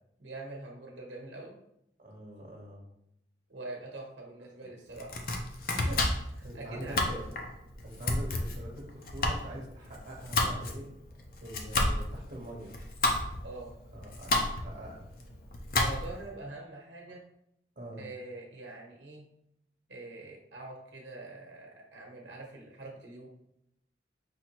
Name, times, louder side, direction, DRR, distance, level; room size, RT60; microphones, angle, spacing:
voice 1, 0.2-1.6 3.5-5.1 5.7-6.0 6.3-7.3 13.4-13.7 15.8-17.2 18.0-19.2 19.9-23.3, right 2 dB, 90° right, -1 dB, 1.0 m, -44 dB
voice 2, 2.0-2.9 6.4-7.2 7.8-10.9 11.4-12.7 13.9-15.1 17.8-18.1, right 1 dB, 50° right, -2 dB, 1.2 m, -44 dB
Domestic sounds home sounds, 4.9-16.3, left 2 dB, 50° left, 0.6 m, -32 dB
5.8 x 2.9 x 2.9 m, 0.80 s
head